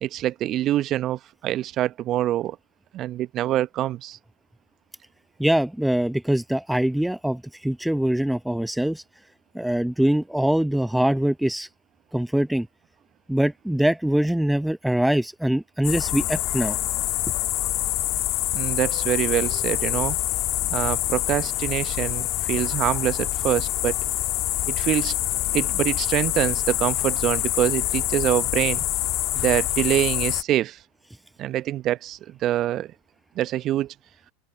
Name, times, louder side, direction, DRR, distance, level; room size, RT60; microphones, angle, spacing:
voice 1, 0.0-2.6 2.9-4.2 18.5-20.2 20.7-24.0 24.7-25.2 25.5-28.8 29.3-30.8 31.4-32.9 33.4-33.9, right 13 dB, 40° right, 0.9 m, -25 dB
voice 2, 5.4-9.0 9.5-11.7 12.1-12.7 13.3-16.8, right 1 dB, 5° right, 0.8 m, -23 dB
sound 1, 15.8-30.4, left 17 dB, 50° left, 1.7 m, -26 dB
open air
hypercardioid pair, 85°, 0 cm